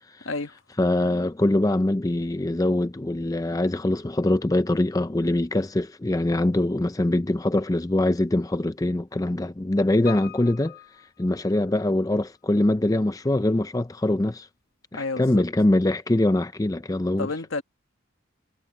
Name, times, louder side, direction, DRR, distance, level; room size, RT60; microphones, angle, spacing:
voice 1, 0.2-0.6 14.9-15.4 17.2-17.6, left 3 dB, 80° left, 1.5 m, -30 dB
voice 2, 0.8-10.8 11.2-14.5 14.9-17.3, left 1 dB, 15° left, 0.4 m, -23 dB
Piano, 10.0-12.1 12.4-12.5, left 12 dB, 50° left, 1.0 m, -44 dB
head